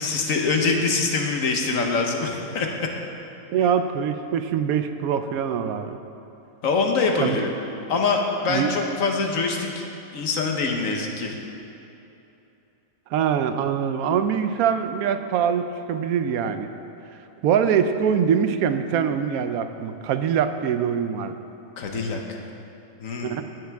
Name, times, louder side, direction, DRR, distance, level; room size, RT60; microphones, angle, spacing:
voice 1, 0.0-2.7 6.6-7.5 7.9-9.8 10.1-11.4 21.8-22.4 23.0-23.4, left 4 dB, 70° left, 2 dB, 1.4 m, -24 dB
voice 2, 3.5-6.0 7.2-7.4 8.5-8.7 13.1-16.7 17.4-21.3 23.2-23.4, right 7 dB, 85° right, 9 dB, 1.1 m, -23 dB
17.0 x 6.7 x 3.5 m, 2.9 s
omnidirectional pair, 1.5 m